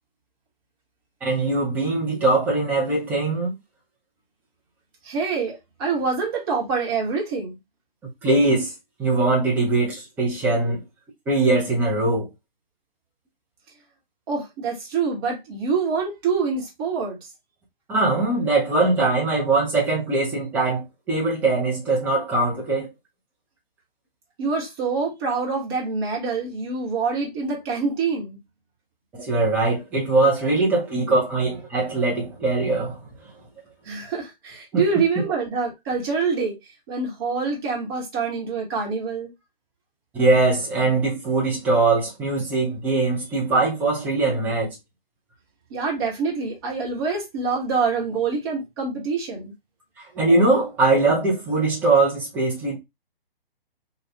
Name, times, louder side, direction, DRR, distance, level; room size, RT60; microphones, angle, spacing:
voice 1, 1.2-3.5 8.2-8.7 9.0-10.8 11.3-12.3 17.9-22.9 29.1-33.0 34.7-34.8 40.1-44.8 50.1-52.8, right 2 dB, 5° right, 0.6 m, -21 dB
voice 2, 5.0-7.6 14.3-17.2 24.4-28.4 33.9-36.6 36.9-39.3 45.7-49.5, right 5 dB, 25° right, 1.1 m, -26 dB
2.9 x 2.3 x 3.3 m
figure-of-eight pair, 130°, 29 cm